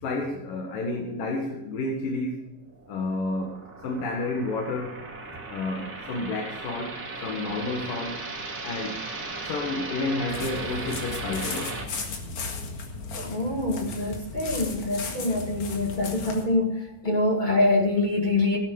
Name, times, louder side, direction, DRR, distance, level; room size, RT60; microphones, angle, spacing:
voice 1, 0.0-2.5 2.9-3.6 3.8-5.0 5.5-8.2 8.6-9.0 9.4-11.8, left 2 dB, 85° left, 0 dB, 3.3 m, -30 dB
strange transition, 2.6-11.8, right 3 dB, 30° right, 2.6 m, -37 dB
sound 1, 10.3-16.4, left 4 dB, 60° left, 3.0 m, -36 dB
voice 2, 13.1-18.6, left 2 dB, 15° left, 0 dB, 1.8 m, -25 dB
17.5 x 8.4 x 5.5 m, 0.85 s
omnidirectional pair, 3.8 m